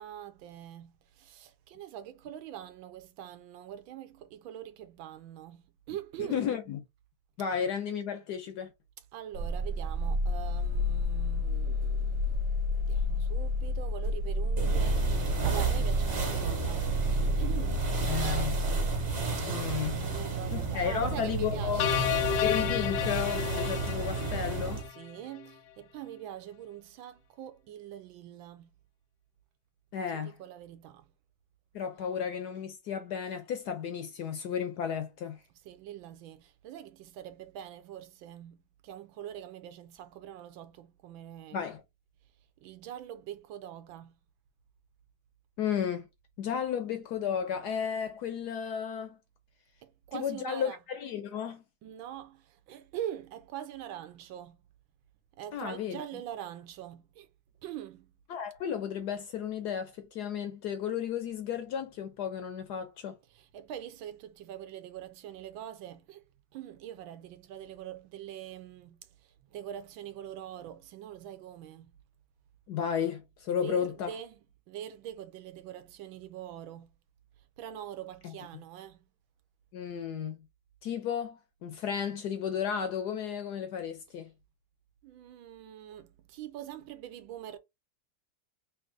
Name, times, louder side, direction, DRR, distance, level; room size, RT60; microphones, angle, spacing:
voice 1, 0.0-6.5 9.1-12.4 12.8-17.9 20.0-22.1 25.0-28.7 30.1-31.0 35.6-38.6 38.8-41.6 42.6-44.1 49.8-50.8 51.8-54.6 55.4-57.3 57.6-58.1 63.3-66.2 66.5-69.0 69.5-71.9 73.5-74.3 74.7-76.9 77.6-79.0 85.0-87.6, right 11 dB, 80° right, 1.4 m, -43 dB
voice 2, 6.2-6.8 7.4-8.7 18.0-18.6 19.5-20.0 20.5-21.9 22.4-24.8 29.9-30.4 31.7-35.4 41.5-41.8 45.6-46.1 46.4-49.2 50.1-51.6 55.5-56.0 58.3-63.1 72.7-74.1 78.2-78.3 79.7-80.4 80.8-84.3, left 8 dB, 70° left, 1.0 m, -33 dB
sound 1, 9.3-19.2, left 1 dB, 60° right, 0.9 m, -30 dB
sound 2, 14.6-24.9, right 5 dB, 40° right, 1.5 m, -32 dB
sound 3, 21.8-25.1, left 12 dB, 85° left, 1.4 m, -31 dB
3.5 x 2.7 x 3.7 m
omnidirectional pair, 2.2 m